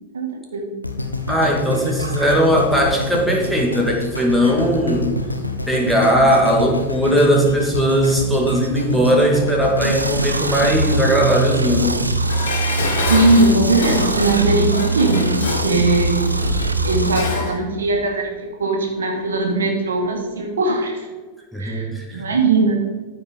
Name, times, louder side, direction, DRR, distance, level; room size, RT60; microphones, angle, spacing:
voice 1, 0.1-0.7 2.0-2.4 13.1-16.4 16.8-21.1 21.6-22.8, right 2 dB, 70° right, 1 dB, 2.0 m, -20 dB
sound 1, 0.8-13.0 13.6-13.7, left 2 dB, 85° left, 1.0 m, -28 dB
voice 2, 1.3-5.1 5.7-12.0 21.5-22.2, equal, ahead, -1 dB, 2.0 m, -18 dB
sound 2, 9.8-17.2, right 2 dB, 85° right, 0.7 m, -22 dB
Dishes pots and pans, 12.3-17.6 17.9-18.0, left 3 dB, 55° left, 2.4 m, -27 dB
13.5 x 5.0 x 5.2 m, 1.3 s
figure-of-eight pair, 90°, 0 cm